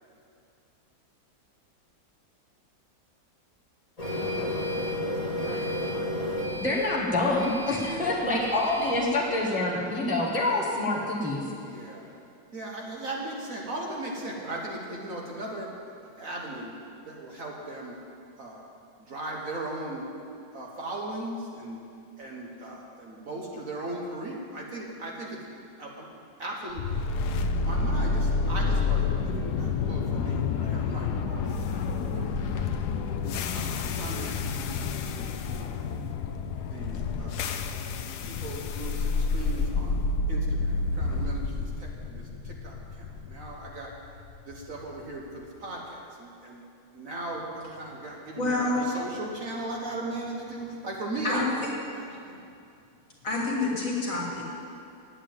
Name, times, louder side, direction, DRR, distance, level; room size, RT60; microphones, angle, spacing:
Printer, 4.0-9.0, left 1 dB, 20° left, 2.0 m, -32 dB
voice 1, 5.4-6.1 7.9-8.2 11.7-12.0 12.5-15.7 16.2-16.7 17.1-18.0 18.4-18.6 19.1-20.0 20.5-21.8 22.2-25.4 25.8-26.1 26.4-27.0 27.4-32.7 33.5-35.0 35.5-35.8 36.7-37.4 37.7-37.9 38.2-43.9 44.5-46.6 46.9-52.4, right 1 dB, 50° right, -1 dB, 1.7 m, -38 dB
voice 2, 6.6-11.4, left 2 dB, 5° right, -4 dB, 1.4 m, -26 dB
sound 1, 26.8-44.9, left 4 dB, 70° left, 1.1 m, -29 dB
voice 3, 48.4-48.8 51.2-51.7 53.2-54.4, left 2 dB, 45° left, -3 dB, 2.6 m, -28 dB
9.8 x 8.5 x 9.1 m, 2.5 s
omnidirectional pair, 2.0 m